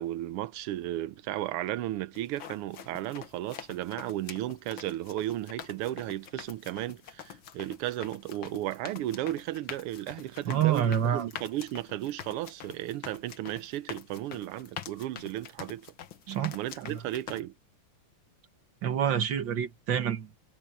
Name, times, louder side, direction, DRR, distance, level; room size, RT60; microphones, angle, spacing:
voice 1, 0.0-15.9 16.5-17.5, right 14 dB, 90° right, 1.7 m, -34 dB
sound 1, 2.2-17.4, left 8 dB, 65° left, 2.0 m, -45 dB
voice 2, 10.5-11.3 16.3-17.0 18.8-20.4, right 9 dB, 60° right, 2.0 m, -28 dB
omnidirectional pair, 2.4 m